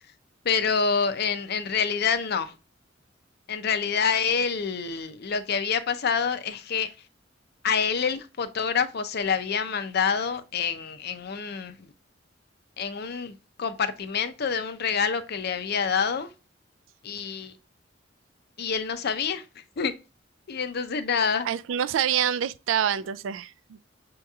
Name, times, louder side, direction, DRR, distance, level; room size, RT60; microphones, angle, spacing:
voice 1, 0.4-2.5 3.5-6.9 7.6-11.7 12.8-16.3 17.0-17.5 18.6-19.4 19.8-19.9 20.5-21.5, left 6 dB, 55° left, 0.5 m, -27 dB
voice 2, 21.4-23.8, right 9 dB, 85° right, 0.3 m, -26 dB
6.2 x 2.9 x 2.3 m
head